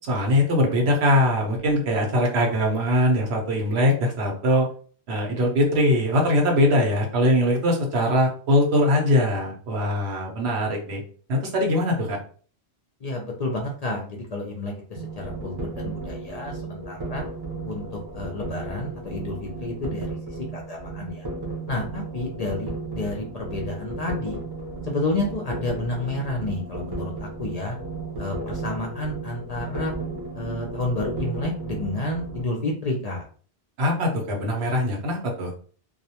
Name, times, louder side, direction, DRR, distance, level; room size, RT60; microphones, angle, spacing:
voice 1, 0.0-4.7 5.1-11.0 11.3-12.2 33.8-35.5, left 1 dB, 85° right, 1 dB, 1.0 m, -22 dB
voice 2, 13.0-17.2 17.7-17.8 18.1-20.1 20.5-21.3 21.7-24.4 24.9-27.8 28.2-29.9 30.3-33.2, left 2 dB, 55° left, 0 dB, 0.5 m, -30 dB
sound 1, 15.0-32.4, right 3 dB, 30° right, 0.5 m, -34 dB
2.3 x 2.1 x 2.8 m, 0.43 s
omnidirectional pair, 1.1 m